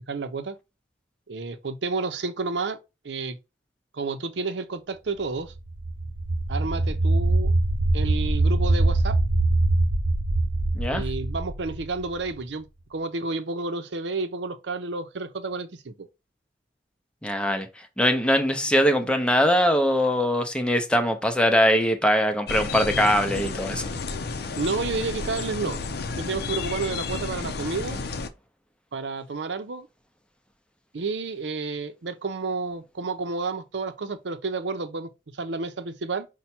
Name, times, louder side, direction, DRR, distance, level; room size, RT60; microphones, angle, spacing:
voice 1, 0.1-0.6 1.3-2.8 3.0-3.4 3.9-5.5 6.5-7.5 7.9-9.2 10.9-16.1 24.6-25.8 26.2-28.0 28.9-29.9 30.9-36.3, right 3 dB, 80° right, 0.7 m, -30 dB
sound 1, 5.6-12.4, right 2 dB, 45° right, 0.9 m, -23 dB
voice 2, 17.2-17.7 18.0-23.8, equal, 5° left, 0.6 m, -22 dB
sound 2, 22.5-28.3, left 4 dB, 65° left, 0.6 m, -31 dB
5.6 x 2.2 x 4.3 m
head